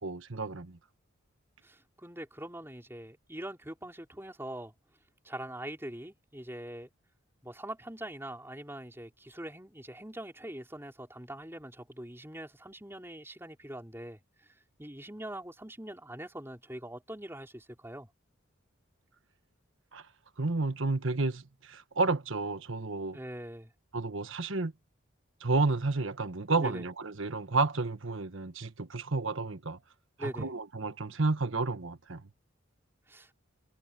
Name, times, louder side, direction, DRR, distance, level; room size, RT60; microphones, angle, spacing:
voice 1, 0.0-0.8 19.9-20.0 20.4-23.2 23.9-24.7 25.4-29.8 30.2-32.2, right 3 dB, 70° right, 1.3 m, -31 dB
voice 2, 1.6-4.7 5.2-6.9 7.4-18.1 23.1-23.7 26.6-26.8 30.2-30.5 33.1-33.3, right 1 dB, 10° right, 4.2 m, -43 dB
head